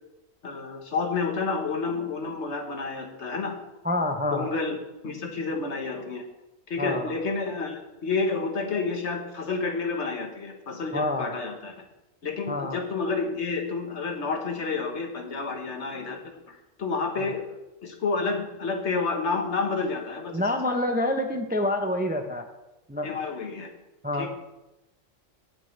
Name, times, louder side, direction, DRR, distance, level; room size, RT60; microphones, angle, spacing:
voice 1, 0.4-3.6 4.3-4.8 5.0-6.2 6.7-11.7 12.2-17.5 17.8-20.8 23.0-23.7 24.1-24.3, left 4 dB, 65° left, 3 dB, 1.6 m, -30 dB
voice 2, 3.8-4.5 6.8-7.1 10.9-11.3 12.5-12.8 17.2-17.3 20.3-22.5 22.9-23.2 24.0-24.3, left 1 dB, 10° right, 5 dB, 0.5 m, -27 dB
17.0 x 6.5 x 3.3 m, 0.97 s
omnidirectional pair, 1.3 m